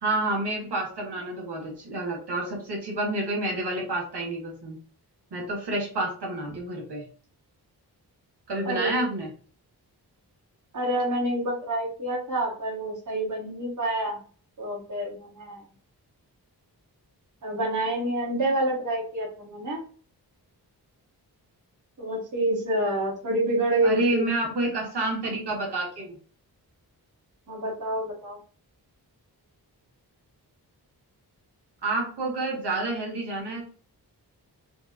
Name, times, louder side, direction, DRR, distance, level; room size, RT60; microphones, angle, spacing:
voice 1, 0.0-4.8 5.3-7.0 8.5-9.3 23.8-26.2 31.8-33.6, right 2 dB, 85° right, -1 dB, 1.6 m, -29 dB
voice 2, 8.6-9.1 10.7-14.2 14.6-15.6 17.4-19.8 22.0-24.2 27.5-28.4, right 1 dB, 50° right, -2 dB, 1.3 m, -28 dB
4.5 x 2.8 x 2.5 m, 0.41 s
wide cardioid pair, 90°, 39 cm